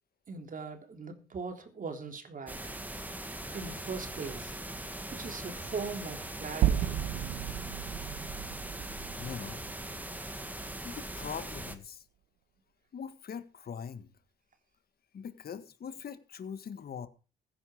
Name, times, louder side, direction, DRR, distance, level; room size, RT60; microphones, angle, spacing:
voice 1, 0.3-2.6 3.5-4.5 5.1-6.9, right 4 dB, 45° right, 3.4 m, -40 dB
sound 1, 2.5-11.8, right 1 dB, 10° right, 2.0 m, -41 dB
sound 2, 6.6-10.8, right 11 dB, 90° right, 1.5 m, -33 dB
voice 2, 9.2-9.7 10.8-12.0 12.9-14.1 15.1-17.1, left 7 dB, 50° left, 1.7 m, -42 dB
15.5 x 10.5 x 5.1 m
cardioid pair, 90°, 20 cm